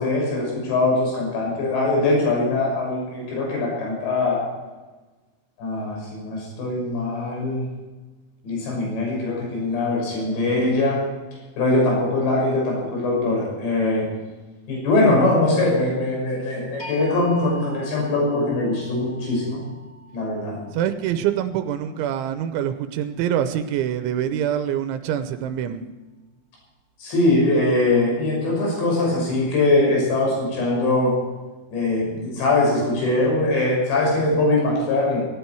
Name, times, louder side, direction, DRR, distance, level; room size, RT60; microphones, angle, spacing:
voice 1, 0.0-4.4 5.6-7.6 8.4-11.0 11.6-14.0 14.7-19.7 20.1-20.6 27.0-31.2 31.7-35.2, left 2 dB, 65° left, -2 dB, 8.1 m, -22 dB
sound 1, 16.8-22.8, right 1 dB, 15° left, 4.8 m, -43 dB
voice 2, 20.7-25.8, right 10 dB, 85° right, 9 dB, 3.2 m, -25 dB
18.0 x 17.5 x 4.7 m, 1.2 s
omnidirectional pair, 5.4 m